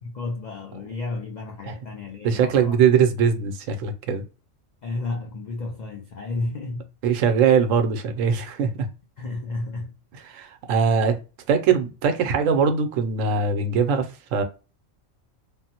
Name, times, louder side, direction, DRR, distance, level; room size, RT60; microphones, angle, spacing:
voice 1, 0.0-3.0 4.8-6.9 9.2-9.9, left 3 dB, 85° left, 0.4 m, -32 dB
voice 2, 2.2-4.2 7.0-8.9 10.3-11.2 11.5-14.4, right 6 dB, 90° right, 1.0 m, -21 dB
3.5 x 2.0 x 2.7 m
omnidirectional pair, 1.3 m